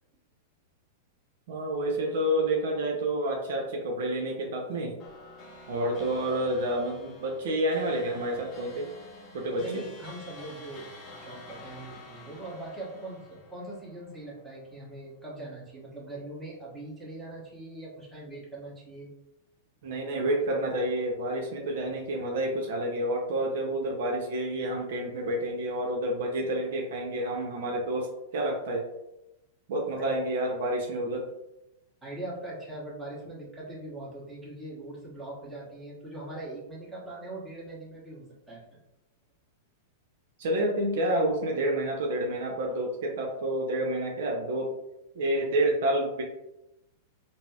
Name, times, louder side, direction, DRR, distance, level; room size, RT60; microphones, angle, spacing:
voice 1, 1.5-5.0 5.7-8.9 9.3-9.7 19.8-28.9 29.7-31.3 40.4-44.7 45.2-46.2, right 1 dB, 70° right, 0 dB, 0.6 m, -29 dB
sound 1, 5.0-14.6, left 2 dB, 35° left, 0.8 m, -49 dB
voice 2, 9.6-10.9 11.1-19.1 30.0-30.1 32.0-38.8, right 2 dB, 10° right, -6 dB, 1.2 m, -41 dB
3.9 x 2.0 x 2.4 m, 0.91 s
hypercardioid pair, 110°, 0 cm